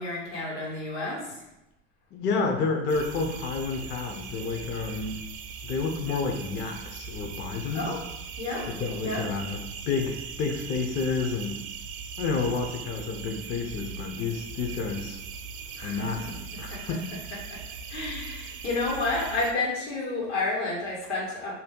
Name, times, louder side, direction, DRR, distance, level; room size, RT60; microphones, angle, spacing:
voice 1, 0.0-1.3 7.7-8.0 8.4-8.7 9.0-9.2 15.8-16.1 16.7-16.8 17.5-17.6 17.9-21.5, left 2 dB, 90° left, -5 dB, 1.4 m, -30 dB
voice 2, 2.1-5.2 5.6-8.0 8.7-11.6 12.2-15.2 15.8-17.1, left 4 dB, 35° left, 3 dB, 0.4 m, -30 dB
sound 1, 2.9-19.5, right 5 dB, 45° right, 0.4 m, -40 dB
2.7 x 2.2 x 3.5 m, 0.90 s
hypercardioid pair, 85°, 33 cm